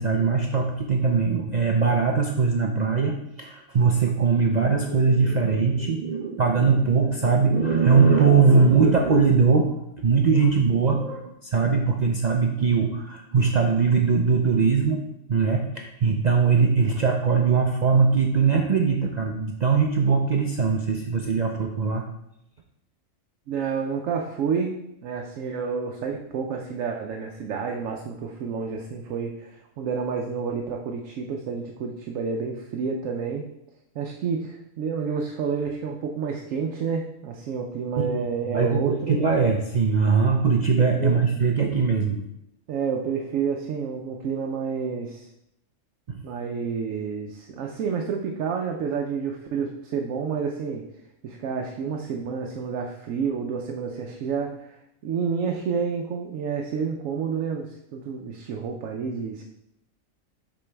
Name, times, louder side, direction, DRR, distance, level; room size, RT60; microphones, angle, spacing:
voice 1, 0.0-15.0 15.3-22.0 38.0-38.2 38.5-42.2 46.1-46.2, right 5 dB, 55° right, 2 dB, 0.5 m, -21 dB
voice 2, 23.5-24.7 25.0-33.5 33.9-39.2 41.0-41.2 42.7-45.3 46.2-50.8 51.2-59.4, right 6 dB, 80° right, 2 dB, 1.0 m, -29 dB
6.9 x 5.3 x 3.4 m, 0.80 s
omnidirectional pair, 1.3 m